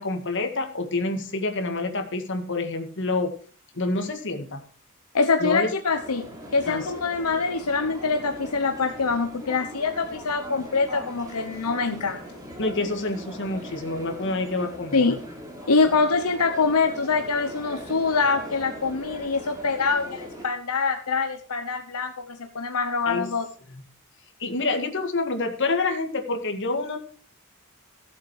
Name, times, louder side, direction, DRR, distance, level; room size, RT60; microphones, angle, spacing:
voice 1, 0.0-3.3 3.7-4.6 5.4-5.7 6.7-6.9 12.6-15.0 23.1-23.3 23.7-23.8 24.4-27.0, left 2 dB, 55° left, 5 dB, 1.9 m, -27 dB
voice 2, 5.1-6.3 6.5-12.4 14.9-15.2 15.7-23.5, left 4 dB, 85° left, 6 dB, 1.0 m, -24 dB
sound 1, 6.0-20.5, equal, 15° right, 3.5 m, -40 dB
14.5 x 7.7 x 4.8 m, 0.42 s
head